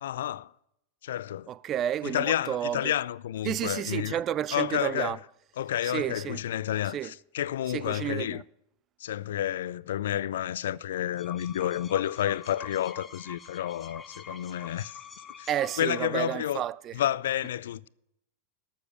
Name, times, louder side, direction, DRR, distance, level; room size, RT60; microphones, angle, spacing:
voice 1, 0.0-0.5 1.0-1.5 2.0-4.2 4.5-5.2 5.6-8.4 9.0-15.0 15.4-15.5 15.8-16.6 16.9-17.9, left 11 dB, 70° left, 0.3 m, -30 dB
voice 2, 1.5-2.9 3.4-5.2 5.9-6.4 6.9-7.1 7.7-8.4 15.5-16.9, right 11 dB, 35° right, 0.4 m, -31 dB
sound 1, 10.9-16.3, left 6 dB, 20° left, 0.9 m, -45 dB
12.5 x 7.1 x 6.5 m
hypercardioid pair, 90°, 0 cm